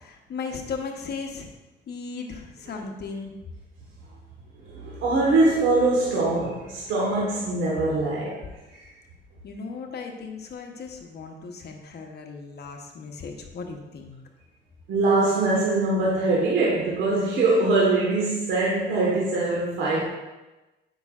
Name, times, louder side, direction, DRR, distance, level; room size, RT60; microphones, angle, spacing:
voice 1, 0.0-1.5 1.9-3.4 9.4-14.2, left 4 dB, 55° left, 3 dB, 1.0 m, -36 dB
voice 2, 4.6-8.8 14.9-20.0, right 2 dB, 85° right, -5 dB, 1.4 m, -23 dB
8.0 x 5.7 x 2.4 m, 1.1 s
cardioid pair, 90°, 20 cm